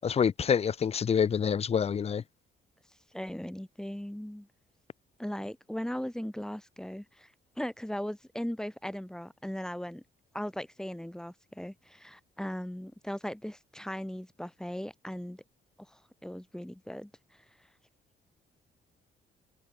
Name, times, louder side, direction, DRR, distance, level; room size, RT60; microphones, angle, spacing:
voice 1, 0.0-2.2, left 7 dB, 30° left, 0.4 m, -27 dB
voice 2, 3.1-4.5 5.2-10.0 10.3-15.4 15.9-17.4, equal, 5° left, 3.2 m, -38 dB
cardioid pair, 90°, 20 cm